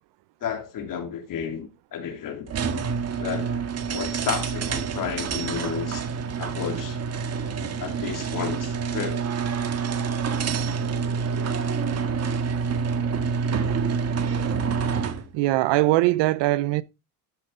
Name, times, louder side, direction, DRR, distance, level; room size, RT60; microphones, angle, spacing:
voice 1, 0.4-2.6 3.2-3.5 3.9-6.1 6.4-7.0 7.8-9.2, left 8 dB, 40° left, 2.8 m, -32 dB
sound 1, 2.5-15.3, right 6 dB, 30° right, 1.7 m, -27 dB
voice 2, 15.3-16.8, right 18 dB, 60° right, 0.8 m, -21 dB
13.0 x 7.6 x 3.8 m
cardioid pair, 135°, 50 cm